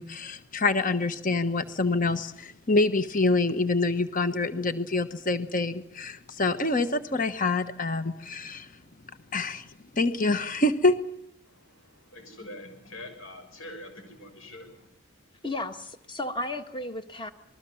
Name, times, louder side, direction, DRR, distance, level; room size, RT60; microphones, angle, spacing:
voice 1, 0.0-8.7 9.3-9.7 9.9-11.0, left 2 dB, 40° left, 11 dB, 1.2 m, -26 dB
voice 2, 11.4-14.9, left 1 dB, 65° left, 5 dB, 6.6 m, -45 dB
voice 3, 15.4-17.3, left 1 dB, 20° left, 8 dB, 1.6 m, -34 dB
27.5 x 21.0 x 7.2 m, 0.79 s
head